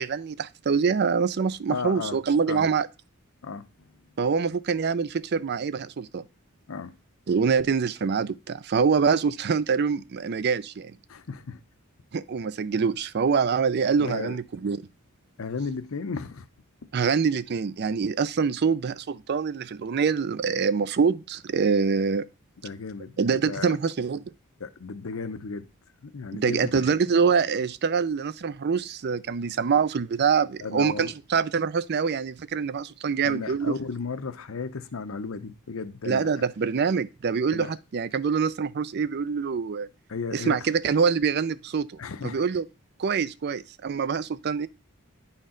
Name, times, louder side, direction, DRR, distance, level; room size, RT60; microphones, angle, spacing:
voice 1, 0.0-2.9 4.2-6.2 7.3-11.0 12.1-14.8 16.9-22.3 23.2-24.2 26.3-33.7 36.1-39.9 40.3-41.9 42.2-42.7 43.0-44.7, right 5 dB, 50° right, 0.4 m, -25 dB
voice 2, 1.7-2.7 3.4-3.9 6.7-6.9 11.1-11.6 14.0-14.4 15.4-16.5 22.6-23.7 24.6-25.7 26.0-26.8 30.6-31.1 33.2-36.5 37.5-37.8 40.1-40.7 42.0-42.4, left 4 dB, 65° left, 0.7 m, -35 dB
10.5 x 4.3 x 3.8 m
head